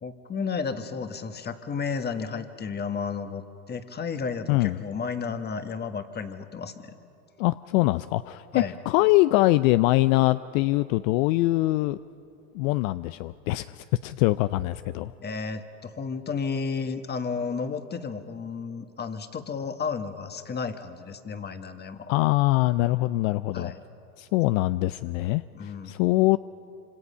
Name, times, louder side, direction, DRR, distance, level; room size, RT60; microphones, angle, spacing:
voice 1, 0.0-7.0 8.5-8.7 15.2-22.1 23.5-23.8 25.5-25.9, left 5 dB, 20° left, 9 dB, 1.4 m, -32 dB
voice 2, 7.4-12.0 12.5-15.1 22.1-23.7 24.2-26.4, left 18 dB, 60° left, 14 dB, 0.6 m, -23 dB
26.5 x 26.0 x 5.6 m, 2.8 s
hypercardioid pair, 105°, 45 cm